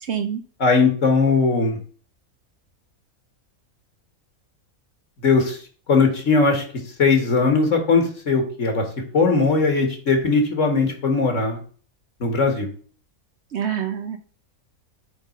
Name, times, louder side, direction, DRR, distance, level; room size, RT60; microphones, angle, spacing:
voice 1, 0.0-0.4 13.5-14.2, right 8 dB, 60° right, 8 dB, 0.8 m, -26 dB
voice 2, 0.6-1.8 5.2-5.6 5.9-6.6 7.0-8.9 9.1-11.6 12.2-12.7, left 4 dB, 60° left, 4 dB, 1.9 m, -19 dB
8.2 x 3.7 x 5.3 m, 0.42 s
omnidirectional pair, 1.5 m